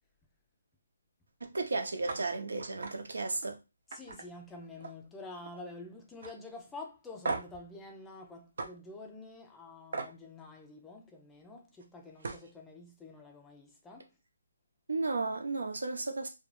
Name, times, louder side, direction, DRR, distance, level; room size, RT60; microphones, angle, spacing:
voice 1, 1.4-3.6 14.9-16.3, right 3 dB, 85° right, 0.8 m, -34 dB
sound 1, 2.1-2.2 2.6-2.9 3.3-3.5 3.9-5.1 5.4-5.8 6.2-6.3 7.2-7.6 8.6-8.7 9.9-10.1 11.8-11.9 12.2-12.5, right 3 dB, 55° right, 0.5 m, -38 dB
voice 2, 3.9-14.1, left 2 dB, 5° left, 0.4 m, -48 dB
2.4 x 2.2 x 3.1 m
hypercardioid pair, 165°, 0 cm